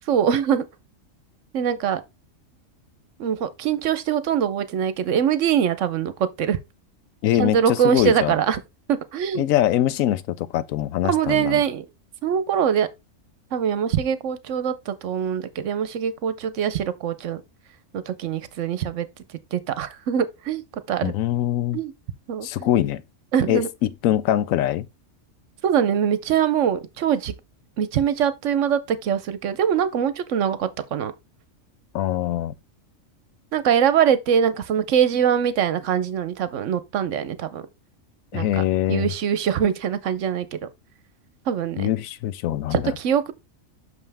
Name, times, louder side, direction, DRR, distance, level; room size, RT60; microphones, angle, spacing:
voice 1, 0.1-0.6 1.5-2.0 3.2-6.6 7.4-8.6 8.9-9.5 11.0-11.9 12.2-12.9 13.5-17.4 17.9-19.1 19.5-20.6 20.9-21.1 21.7-21.9 22.3-22.7 23.3-23.7 25.6-27.3 27.8-31.1 33.5-37.6 38.3-38.6 38.9-40.7 41.5-41.9 42.7-43.3, right 8 dB, 70° right, 1.0 m, -23 dB
voice 2, 7.2-8.3 9.4-11.6 21.0-21.8 22.4-23.0 23.5-24.9 31.9-32.5 38.3-39.1 41.8-43.0, left 12 dB, 80° left, 1.0 m, -23 dB
6.1 x 5.5 x 3.3 m
omnidirectional pair, 1.4 m